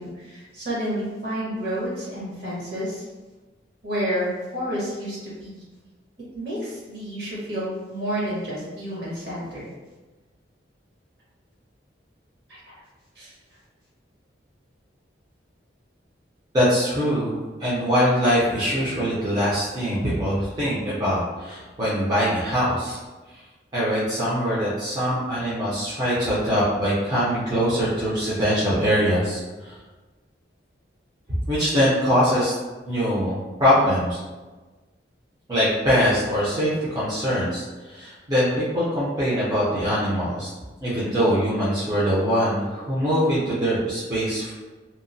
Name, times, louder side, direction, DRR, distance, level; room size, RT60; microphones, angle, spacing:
voice 1, 0.0-3.0 3.8-5.6 6.3-9.6 12.5-12.7 13.1-13.3, equal, 55° right, -8 dB, 1.1 m, -30 dB
voice 2, 16.5-23.0 23.7-29.8 31.5-32.5 32.9-34.2 35.5-40.5 40.8-44.5, equal, 20° right, -10 dB, 0.5 m, -23 dB
2.8 x 2.0 x 2.6 m, 1.2 s
head